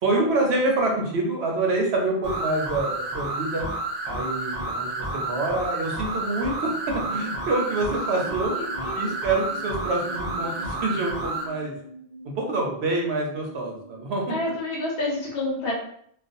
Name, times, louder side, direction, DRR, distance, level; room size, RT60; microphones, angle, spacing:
voice 1, 0.0-3.7 4.0-8.5 8.9-11.8 12.4-14.2, right 2 dB, 80° right, 0 dB, 0.9 m, -26 dB
sound 1, 2.2-11.5, right 2 dB, 45° right, 0.6 m, -30 dB
sound 2, 6.9-14.4, right 1 dB, 40° left, 0.7 m, -43 dB
voice 2, 8.5-9.1 14.3-15.7, left 2 dB, 70° left, -5 dB, 1.0 m, -29 dB
2.4 x 2.3 x 2.5 m, 0.66 s
omnidirectional pair, 1.1 m